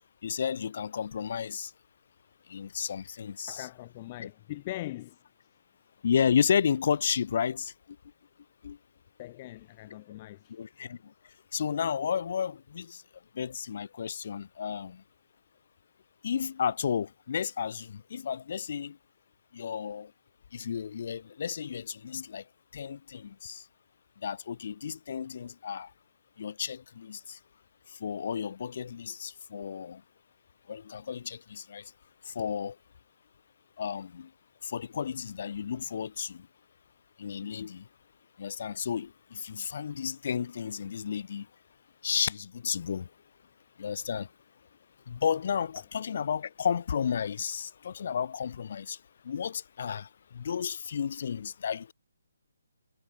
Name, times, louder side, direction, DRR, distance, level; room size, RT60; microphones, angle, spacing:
voice 1, 0.2-1.7 2.5-3.7 4.2-4.3 6.0-7.7 8.6-8.8 9.9-10.0 10.5-11.0 11.5-13.0 13.3-15.0 16.2-19.0 19.5-20.1 20.5-22.4 22.7-23.6 24.2-25.9 26.4-27.4 28.0-30.0 30.7-31.9 32.3-32.7 33.8-34.3 34.6-36.5 37.2-37.8 38.4-41.5 42.0-43.1 43.8-44.3 45.1-49.0 49.2-51.9, left 7 dB, 50° left, 1.2 m, -32 dB
voice 2, 3.5-5.2 9.2-10.6, left 16 dB, 30° left, 2.9 m, -41 dB
figure-of-eight pair, 145°, 0 cm